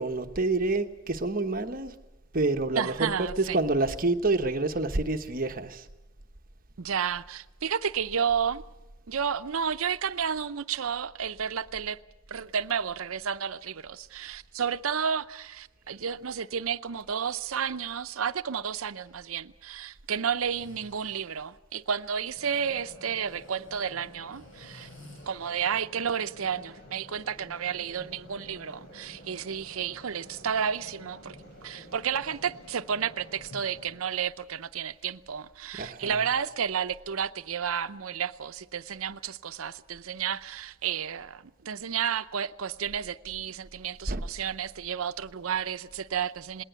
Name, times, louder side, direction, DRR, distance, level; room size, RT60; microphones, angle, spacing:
voice 1, 0.0-1.9 2.3-3.1 3.4-5.9 35.8-36.2 44.1-44.2, right 2 dB, 40° right, 1.1 m, -27 dB
voice 2, 2.7-3.6 6.8-8.6 9.1-12.0 12.3-24.9 25.2-31.4 31.6-46.6, right 7 dB, 80° right, 0.6 m, -31 dB
Breathing, 18.9-19.1 20.3-21.5 23.2-25.9, left 2 dB, 70° left, 4.7 m, -55 dB
sound 1, 22.3-34.0, left 1 dB, 50° left, 4.0 m, -50 dB
20.0 x 18.5 x 8.1 m
head